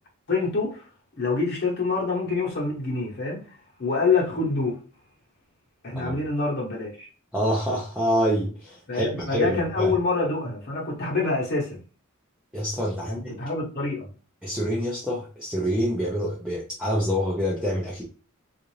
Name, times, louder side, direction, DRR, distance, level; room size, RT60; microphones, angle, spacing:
voice 1, 0.3-0.9 1.2-4.8 5.8-7.1 8.9-11.8 13.0-14.1, left 3 dB, 50° left, 1.1 m, -26 dB
voice 2, 7.3-9.9 12.5-13.3 14.4-18.0, equal, 5° right, 0.6 m, -26 dB
3.8 x 2.5 x 3.1 m
head